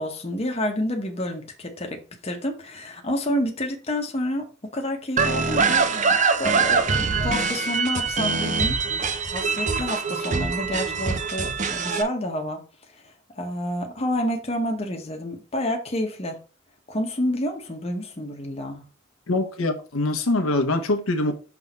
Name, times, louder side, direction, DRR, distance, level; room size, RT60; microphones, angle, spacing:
voice 1, 0.0-12.6 12.9-16.4 16.9-18.8, left 1 dB, 30° left, 1.0 m, -29 dB
sound 1, 5.2-12.0, right 5 dB, 35° right, 0.7 m, -23 dB
voice 2, 19.3-21.3, left 2 dB, 90° left, 1.0 m, -23 dB
5.9 x 3.5 x 5.3 m
head